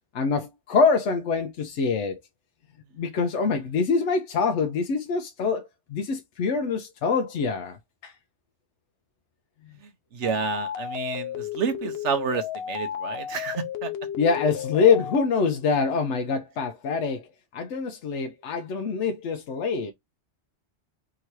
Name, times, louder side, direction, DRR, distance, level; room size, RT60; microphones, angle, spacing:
voice 1, 0.1-2.2 3.0-8.1 9.6-9.8 14.2-17.2 17.5-19.9, left 5 dB, 90° left, 1.0 m, -25 dB
voice 2, 10.1-13.9, right 6 dB, 85° right, 1.2 m, -30 dB
sound 1, 10.2-15.3, left 9 dB, 65° left, 0.9 m, -33 dB
3.7 x 2.9 x 4.5 m
omnidirectional pair, 1.2 m